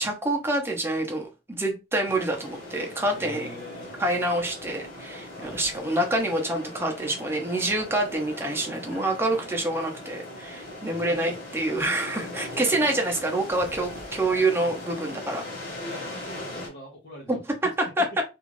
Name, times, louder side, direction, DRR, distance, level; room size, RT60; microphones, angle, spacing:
voice 1, 0.0-3.5 4.0-15.4 17.3-18.2, right 1 dB, 15° right, 0.6 m, -27 dB
sound 1, 2.0-16.7, left 1 dB, 50° left, 1.3 m, -39 dB
voice 2, 3.1-3.9 5.4-5.6 10.9-11.5 12.5-13.0 15.8-17.4, left 1 dB, 65° left, 0.7 m, -42 dB
2.5 x 2.3 x 3.1 m
head